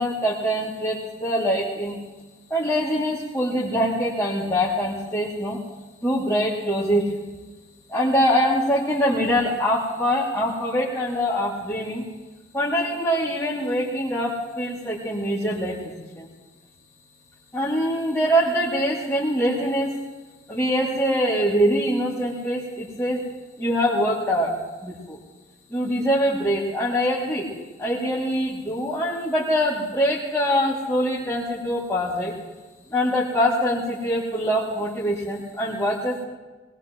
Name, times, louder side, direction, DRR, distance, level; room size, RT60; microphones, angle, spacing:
voice 1, 0.0-2.0 2.5-5.6 6.0-7.1 7.9-12.1 12.5-16.3 17.5-19.9 20.5-23.2 23.6-24.6 24.8-25.2 25.7-27.5 27.8-32.3 32.9-36.2, equal, 15° left, -9 dB, 2.7 m, -24 dB
20.5 x 20.0 x 3.1 m, 1.2 s
head